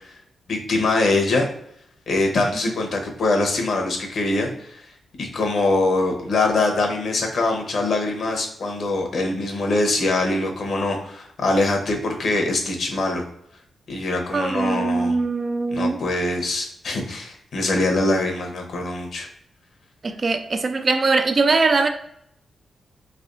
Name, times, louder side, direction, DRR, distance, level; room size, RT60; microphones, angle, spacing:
voice 1, 0.5-1.5 2.1-4.8 5.2-13.2 13.9-15.2 15.7-19.3, left 2 dB, 60° left, 0.9 m, -23 dB
voice 2, 14.3-16.0 20.0-21.9, right 3 dB, 35° right, 0.3 m, -21 dB
3.5 x 3.3 x 2.5 m
wide cardioid pair, 135°, 0 cm